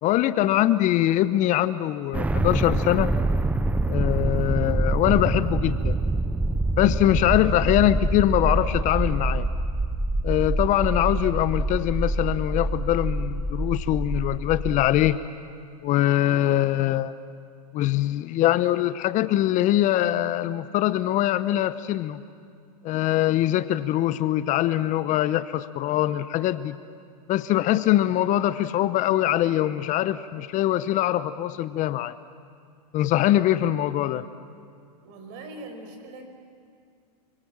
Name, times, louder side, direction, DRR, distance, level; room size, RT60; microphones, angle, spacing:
voice 1, 0.0-3.1 3.9-6.0 6.8-9.5 10.2-15.2 15.8-17.1 17.7-22.2 22.8-26.8 27.3-32.2 32.9-34.3, left 13 dB, 40° left, 14 dB, 0.8 m, -23 dB
sound 1, 2.1-15.2, right 2 dB, 5° right, 0.6 m, -26 dB
voice 2, 35.0-36.3, right 2 dB, 55° right, 5 dB, 5.3 m, -41 dB
27.5 x 24.0 x 7.5 m, 2.2 s
hypercardioid pair, 110°, 21 cm